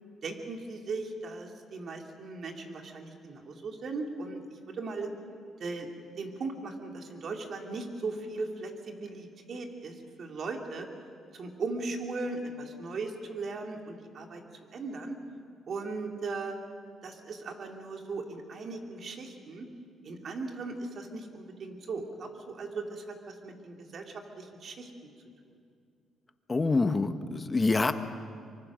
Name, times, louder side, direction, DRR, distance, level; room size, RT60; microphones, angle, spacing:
voice 1, 0.2-4.4 4.7-5.1 5.6-10.9 11.3-14.4 14.7-15.2 15.7-16.5 17.0-19.7 20.0-24.9 25.5-25.6, right 3 dB, 55° right, 3 dB, 3.1 m, -38 dB
voice 2, 26.5-27.9, left 3 dB, 25° left, 9 dB, 1.4 m, -26 dB
25.0 x 24.5 x 6.4 m, 2.3 s
cardioid pair, 90°, 0 cm